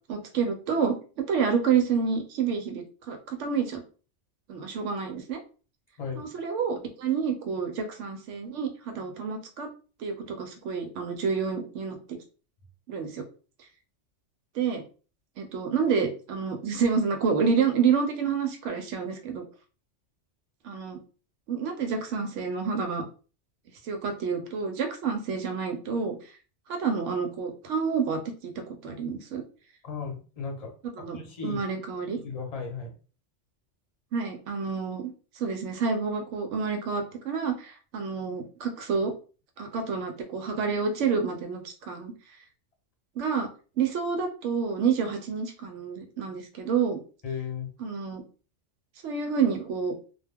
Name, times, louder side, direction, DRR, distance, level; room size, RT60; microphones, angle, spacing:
voice 1, 0.1-3.8 4.5-5.4 6.2-9.7 10.0-12.0 12.9-13.2 14.6-14.8 15.4-19.4 20.6-21.0 21.5-23.0 23.8-26.2 26.7-28.5 28.8-29.4 31.0-32.2 34.1-35.1 35.4-39.1 39.6-42.1 43.2-43.5 43.8-47.0 47.8-48.2 49.0-49.9, right 6 dB, 75° right, 6 dB, 0.9 m, -28 dB
voice 2, 29.8-30.7 31.0-31.6 32.1-32.9 47.2-47.7, left 6 dB, 35° left, 0 dB, 0.8 m, -35 dB
2.2 x 2.2 x 3.4 m, 0.37 s
omnidirectional pair, 1.3 m